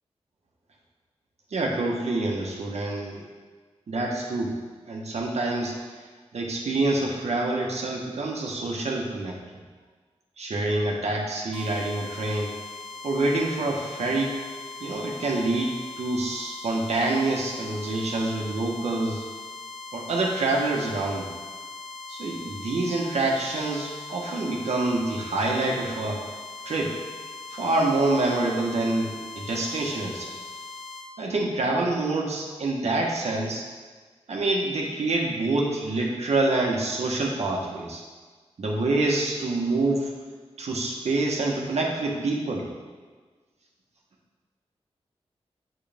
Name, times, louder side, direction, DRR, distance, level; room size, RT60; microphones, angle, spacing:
voice 1, 1.5-3.2 3.9-4.5 4.9-5.7 6.3-9.4 10.4-12.5 13.0-14.4 14.8-19.2 19.9-21.3 22.1-26.2 26.6-26.9 27.5-30.3 31.2-33.6 34.3-38.0 38.6-40.1 40.6-42.7, right 2 dB, 80° right, -1 dB, 1.4 m, -26 dB
sound 1, 11.5-31.1, left 3 dB, 60° left, 1.6 m, -40 dB
9.0 x 6.6 x 3.6 m, 1.4 s
cardioid pair, 55°, 11 cm